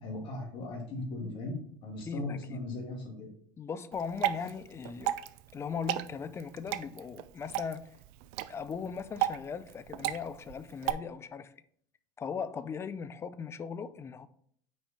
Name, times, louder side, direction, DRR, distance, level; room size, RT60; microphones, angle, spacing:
voice 1, 0.0-1.5 1.8-3.3, left 2 dB, 50° left, 2.4 m, -38 dB
voice 2, 2.1-2.6 3.6-5.1 5.5-8.0 8.5-11.5 12.2-14.3, left 6 dB, 25° left, 0.5 m, -38 dB
Water / Drip, 3.9-10.9, right 13 dB, 65° right, 0.4 m, -35 dB
6.2 x 4.7 x 4.3 m
supercardioid pair, 100°, 11 cm